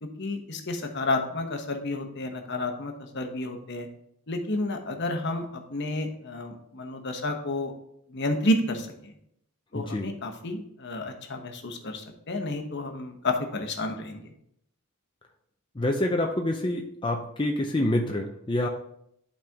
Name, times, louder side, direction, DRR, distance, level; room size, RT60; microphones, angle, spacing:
voice 1, 0.0-3.9 4.3-7.7 8.1-9.1 9.7-14.3, left 2 dB, 55° left, 4 dB, 1.0 m, -31 dB
voice 2, 9.7-10.1 15.8-18.7, left 1 dB, 25° left, 1 dB, 0.6 m, -27 dB
11.5 x 4.3 x 3.5 m, 0.74 s
head